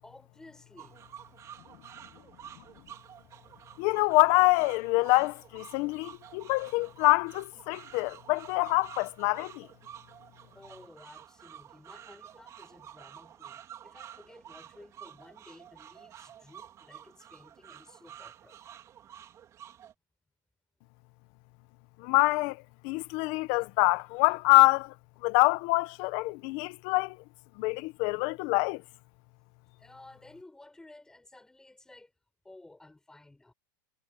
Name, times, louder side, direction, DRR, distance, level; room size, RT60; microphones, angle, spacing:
voice 1, 0.0-1.0 3.5-3.7 10.5-18.6 29.7-32.1 32.4-33.5, left 2 dB, 5° left, 7.5 m, -54 dB
sound 1, 0.8-19.9, right 10 dB, 25° right, 3.8 m, -50 dB
voice 2, 3.8-9.7 22.0-22.6 22.8-24.9 25.2-27.2 27.6-28.8, left 24 dB, 50° left, 1.1 m, -25 dB
supercardioid pair, 145°, 11 cm